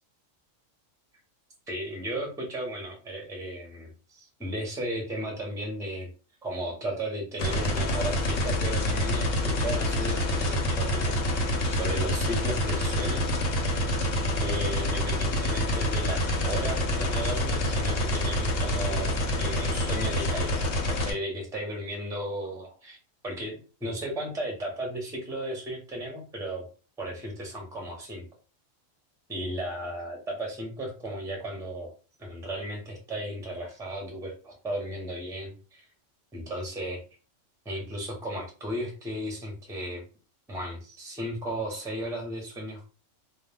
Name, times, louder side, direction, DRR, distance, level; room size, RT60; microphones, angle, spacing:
voice 1, 1.7-6.1 6.4-13.3 14.4-23.0 23.2-26.6 27.0-28.2 29.3-31.9 32.2-35.8 36.3-37.0 37.6-40.0 40.5-42.9, right 1 dB, 5° right, 0 dB, 0.5 m, -35 dB
sound 1, 7.4-21.1, left 1 dB, 80° left, 1.0 m, -27 dB
2.3 x 2.3 x 3.3 m, 0.36 s
omnidirectional pair, 1.3 m